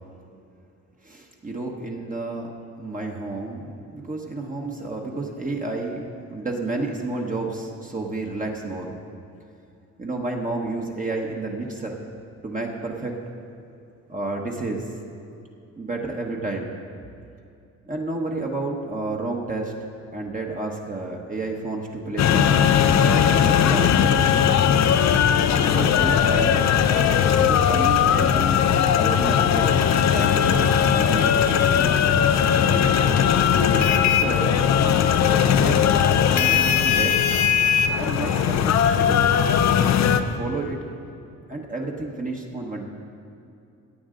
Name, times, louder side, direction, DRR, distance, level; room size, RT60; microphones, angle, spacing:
voice 1, 1.0-2.5 2.8-9.0 10.0-12.0 12.4-13.1 14.1-14.8 15.7-16.7 17.9-19.7 20.1-22.7 22.9-24.4 25.7-26.7 27.3-29.8 30.1-32.0 33.5-34.7 35.6-35.8 36.3-37.3 38.0-39.3 40.1-40.8 41.5-42.8, right 2 dB, 25° right, 0 dB, 1.2 m, -31 dB
sound 1, 22.2-40.2, left 8 dB, 60° left, 0.6 m, -19 dB
16.5 x 8.7 x 3.8 m, 2.6 s
cardioid pair, 90°, 30 cm